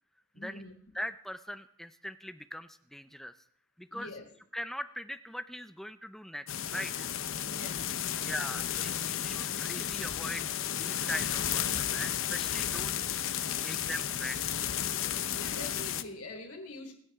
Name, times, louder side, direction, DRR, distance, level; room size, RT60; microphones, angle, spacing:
voice 1, 0.3-0.7 3.9-4.2 7.4-8.6 15.4-16.9, left 2 dB, 90° left, 2 dB, 3.6 m, -45 dB
voice 2, 0.9-3.4 3.8-4.1 4.5-7.1 8.2-12.9 13.5-14.6, equal, ahead, 11 dB, 0.5 m, -41 dB
sound 1, 6.5-16.0, left 10 dB, 65° left, 0.8 m, -33 dB
28.5 x 9.7 x 3.6 m, 0.65 s
head